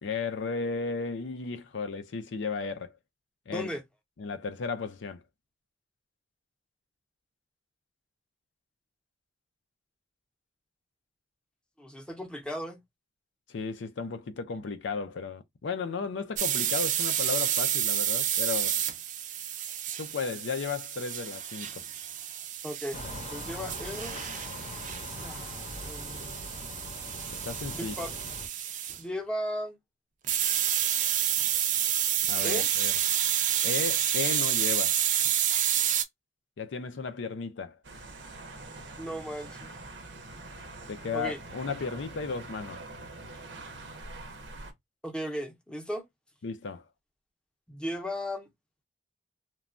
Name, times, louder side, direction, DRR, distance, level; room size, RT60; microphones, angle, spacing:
voice 1, 0.0-2.9 3.5-3.7 4.2-5.2 13.5-18.8 20.0-21.8 27.3-27.9 32.3-32.9 33.6-35.0 36.6-37.8 40.9-42.8 46.4-46.8, left 4 dB, 80° left, 0.5 m, -34 dB
voice 2, 3.5-3.8 11.8-12.8 22.6-24.2 25.0-25.4 25.8-26.3 27.7-28.1 29.0-29.8 32.4-32.7 35.5-35.6 39.0-39.7 41.1-41.4 45.0-46.0 47.7-48.5, equal, 5° left, 0.6 m, -36 dB
sound 1, 16.4-29.0 30.2-36.0, right 10 dB, 45° right, 0.4 m, -29 dB
sound 2, 22.9-28.5, left 2 dB, 40° left, 0.7 m, -42 dB
sound 3, 37.8-44.7, right 2 dB, 80° right, 0.7 m, -44 dB
3.1 x 2.2 x 2.4 m
head